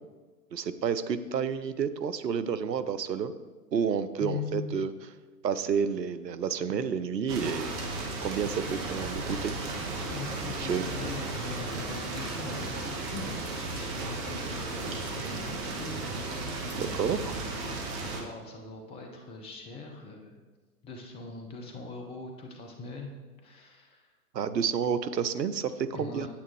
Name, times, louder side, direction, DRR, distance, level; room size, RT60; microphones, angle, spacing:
voice 1, 0.5-3.3 3.7-4.9 5.4-7.7 8.2-9.5 10.5-10.9 16.7-17.4 24.3-26.3, right 7 dB, 85° right, 13 dB, 0.7 m, -30 dB
voice 2, 4.2-4.8 10.1-17.4 17.9-20.4 20.8-23.1 23.4-24.1 25.9-26.3, left 4 dB, 15° left, 3 dB, 0.5 m, -41 dB
sound 1, 7.3-18.2, right 3 dB, 40° right, 1.6 m, -35 dB
sound 2, 8.8-13.8 14.5-14.6, right 1 dB, 10° right, 0.9 m, -47 dB
8.7 x 8.6 x 3.2 m, 1.3 s
figure-of-eight pair, 110°, 49 cm